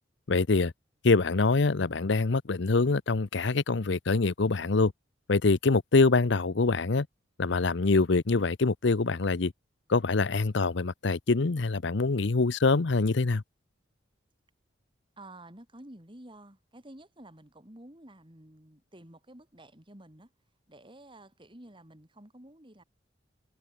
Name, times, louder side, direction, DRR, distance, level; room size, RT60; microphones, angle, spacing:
voice 1, 0.3-0.7 1.0-4.9 5.3-7.1 7.4-9.5 9.9-13.4, left 3 dB, 65° left, 0.7 m, -25 dB
voice 2, 15.2-20.3 20.7-22.8, right 1 dB, 25° right, 3.4 m, -51 dB
head